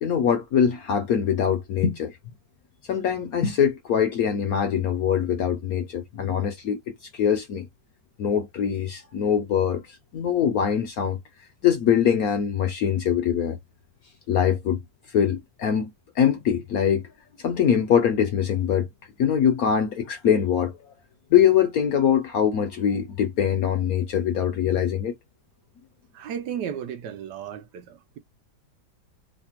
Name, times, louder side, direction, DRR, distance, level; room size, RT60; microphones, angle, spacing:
voice 1, 0.0-2.2 2.9-6.8 7.1-7.6 8.2-11.2 11.6-13.6 14.3-14.8 15.1-15.9 16.2-17.0 17.4-18.9 19.2-20.7 21.3-25.2, left 8 dB, 65° left, 0.9 m, -23 dB
voice 2, 26.1-28.2, right 8 dB, 75° right, 1.1 m, -34 dB
3.3 x 2.2 x 4.2 m
omnidirectional pair, 2.1 m